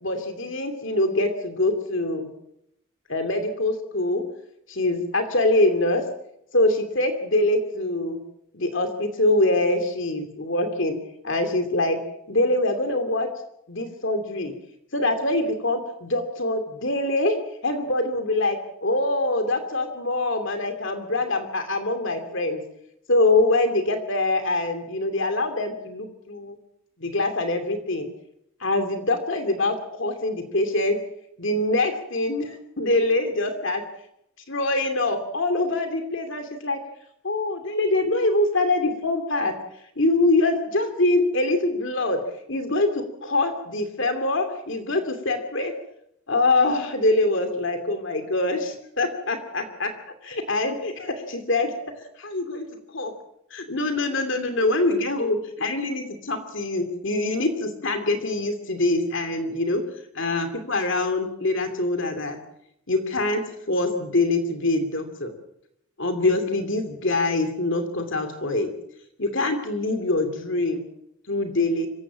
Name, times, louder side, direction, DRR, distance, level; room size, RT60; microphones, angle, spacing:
voice 1, 0.0-2.3 3.1-4.2 4.7-6.0 6.5-8.2 8.5-10.9 11.2-12.0 12.3-13.3 13.7-14.5 14.9-17.3 17.6-22.6 23.1-26.6 27.0-28.1 28.6-31.0 31.4-33.8 34.5-36.8 37.2-39.5 40.0-42.2 42.5-45.7 46.3-49.9 50.2-51.7 52.2-52.7 52.9-53.1 53.5-59.8 60.1-62.4 62.9-65.3 66.0-68.7 69.2-70.8 71.3-71.9, left 2 dB, 55° left, 7 dB, 2.8 m, -24 dB
25.5 x 16.0 x 7.5 m, 0.77 s
head